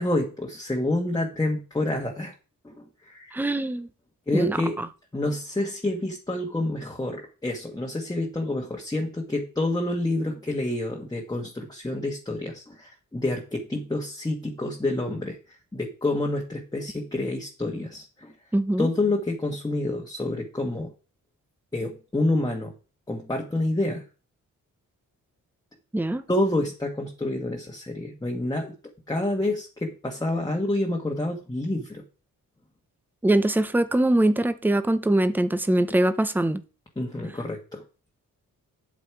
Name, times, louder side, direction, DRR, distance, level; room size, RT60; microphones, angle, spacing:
voice 1, 0.0-2.3 2.6-3.3 4.3-4.8 5.1-18.3 18.8-20.9 21.7-22.7 23.1-24.0 26.3-28.7 29.1-32.0 37.0-37.8, left 2 dB, 10° left, 1.4 m, -28 dB
voice 2, 3.3-3.9 4.3-4.9 18.5-18.9 25.9-26.2 33.2-36.6, right 1 dB, 5° right, 0.7 m, -23 dB
8.2 x 7.4 x 4.8 m
cardioid pair, 90°, 35 cm